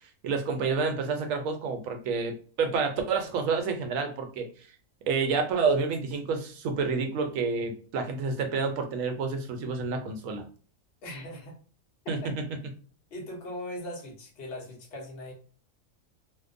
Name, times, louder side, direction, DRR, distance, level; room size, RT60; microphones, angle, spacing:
voice 1, 0.2-4.5 5.1-10.4 12.1-12.3, right 4 dB, 80° right, 5 dB, 1.0 m, -29 dB
voice 2, 11.0-11.6 12.0-12.3 13.1-15.3, left 1 dB, 50° left, -1 dB, 0.9 m, -39 dB
2.7 x 2.1 x 2.5 m, 0.41 s
omnidirectional pair, 1.4 m